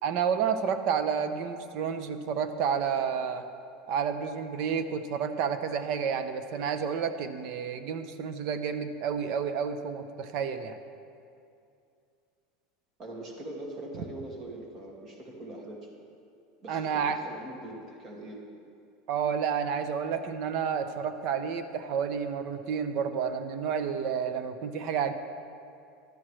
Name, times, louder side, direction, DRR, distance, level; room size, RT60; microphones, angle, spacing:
voice 1, 0.0-3.5 3.9-10.8 16.7-17.2 19.1-25.1, right 7 dB, 55° right, 9 dB, 0.8 m, -30 dB
voice 2, 13.0-15.9 16.6-18.4, right 1 dB, 35° right, -1 dB, 2.1 m, -42 dB
13.5 x 12.0 x 3.3 m, 2.5 s
supercardioid pair, 125°, 0 cm